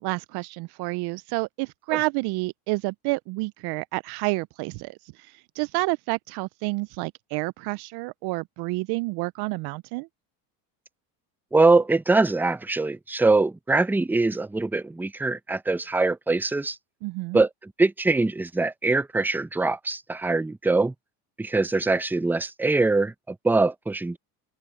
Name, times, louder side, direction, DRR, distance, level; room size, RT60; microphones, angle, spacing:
voice 1, 0.0-10.1 17.0-17.4, right 24 dB, 60° right, 0.6 m, -29 dB
voice 2, 11.5-16.8 17.3-20.9 21.4-24.2, right 3 dB, 5° right, 0.6 m, -23 dB
open air
supercardioid pair, 110°, 44 cm